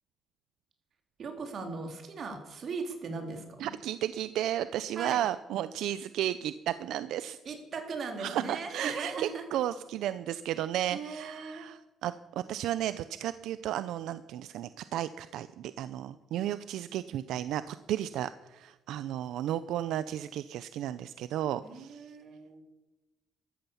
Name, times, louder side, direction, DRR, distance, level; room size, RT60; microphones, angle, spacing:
voice 1, 1.2-3.7 4.9-5.2 7.4-9.4 10.9-11.6 21.6-22.6, right 4 dB, 50° right, 4 dB, 3.3 m, -38 dB
voice 2, 3.6-7.4 8.2-12.1 12.5-22.1, right 12 dB, 85° right, 14 dB, 0.5 m, -33 dB
13.5 x 13.5 x 7.0 m, 1.1 s
cardioid pair, 110°, 0 cm